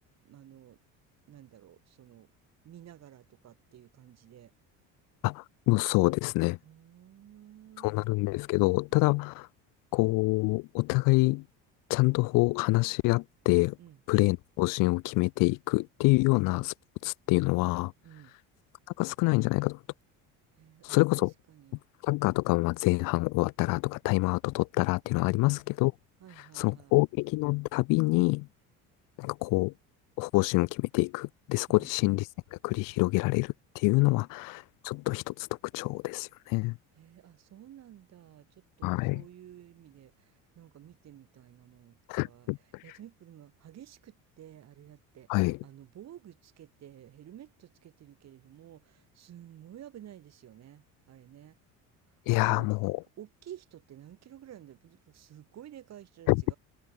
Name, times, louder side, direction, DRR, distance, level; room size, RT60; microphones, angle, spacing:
voice 1, 0.2-0.8 1.3-2.3 2.6-4.5 6.6-8.0 8.9-9.1 13.8-14.0 18.0-18.4 20.6-21.8 25.3-25.5 26.2-26.9 31.7-31.9 34.0-34.3 37.0-42.0 42.2-42.5 42.8-51.6 52.3-52.7 53.2-56.6, right 11 dB, 50° right, 5.6 m, -52 dB
voice 2, 5.2-6.6 7.8-9.3 9.9-11.4 11.9-13.8 14.1-16.7 17.0-17.9 19.0-19.8 20.8-21.3 22.0-25.9 26.6-28.5 29.2-29.7 30.2-35.5 35.7-36.8 38.8-39.2 42.1-42.8 45.3-45.6 52.3-53.0 56.3-56.4, left 24 dB, 70° left, 0.6 m, -26 dB
cardioid pair, 115°, 34 cm